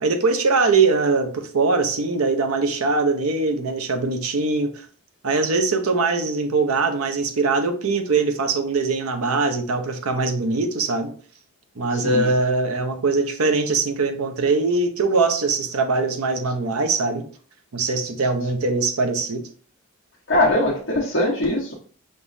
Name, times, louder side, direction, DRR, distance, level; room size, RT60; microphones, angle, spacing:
voice 1, 0.0-4.9 5.2-11.1 11.8-17.2 17.7-19.5, right 3 dB, 85° right, 6 dB, 0.7 m, -22 dB
voice 2, 11.9-12.3 20.3-21.7, left 1 dB, 60° left, -6 dB, 1.0 m, -21 dB
5.3 x 3.0 x 2.6 m, 0.43 s
head